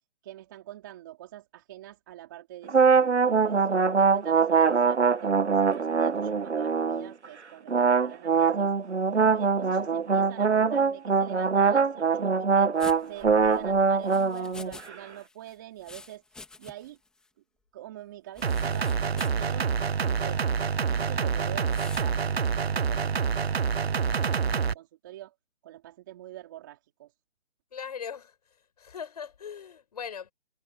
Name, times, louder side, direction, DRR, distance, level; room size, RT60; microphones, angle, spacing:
voice 1, 0.2-8.7 9.1-17.0 17.7-19.7 20.0-20.4 20.8-22.5 22.7-25.3 25.6-27.1, right 13 dB, 20° right, 3.0 m, -45 dB
sound 1, 2.7-7.1 7.7-14.9, right 5 dB, 90° right, 1.6 m, -23 dB
sound 2, 12.8-14.9 15.2-17.0 17.2-17.3 18.4-19.4 20.0-20.2 21.7-22.1, left 3 dB, ahead, 3.5 m, -47 dB
sound 3, 18.4-24.7, right 6 dB, 65° right, 1.1 m, -27 dB
voice 2, 27.7-28.3 28.8-30.3, left 7 dB, 35° left, 6.2 m, -39 dB
hypercardioid pair, 175°, 33 cm